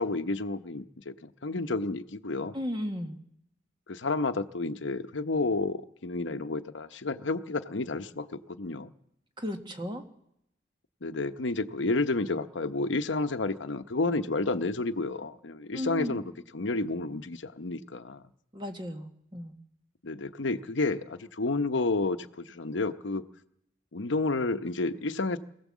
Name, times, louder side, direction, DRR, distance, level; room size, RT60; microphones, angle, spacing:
voice 1, 0.0-2.6 3.9-8.9 11.0-18.2 20.0-23.2 23.9-25.4, left 3 dB, 85° left, 9 dB, 0.9 m, -31 dB
voice 2, 2.5-3.2 9.4-10.0 15.7-16.2 18.5-19.5, left 1 dB, 25° right, 5 dB, 1.6 m, -35 dB
23.5 x 17.0 x 7.4 m, 0.80 s
head